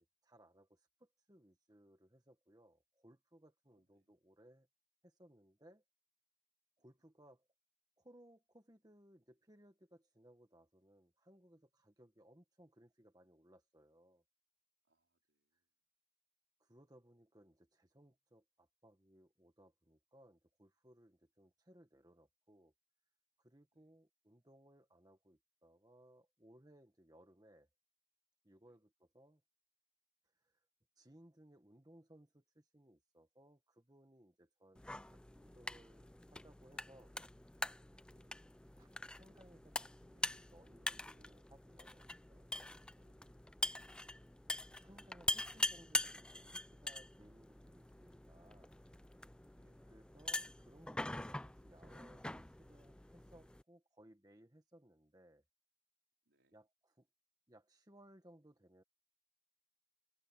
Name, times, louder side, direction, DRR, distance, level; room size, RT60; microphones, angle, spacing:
voice 1, 0.0-4.7 5.0-5.8 6.8-7.5 8.0-14.2 16.6-22.7 23.4-27.7 28.4-29.4 30.3-30.6 31.0-37.2 38.8-42.8 44.8-48.7 49.9-55.4 56.5-57.1 57.5-58.8, right 1 dB, 20° right, 1.6 m, -64 dB
voice 2, 3.7-4.1 14.8-15.7 23.7-24.0 28.6-28.8 38.1-38.4 42.9-43.5 49.5-49.8 56.3-56.6, right 1 dB, 75° right, 4.4 m, -82 dB
sound 1, 34.8-53.6, left 2 dB, 5° left, 0.3 m, -44 dB
open air
head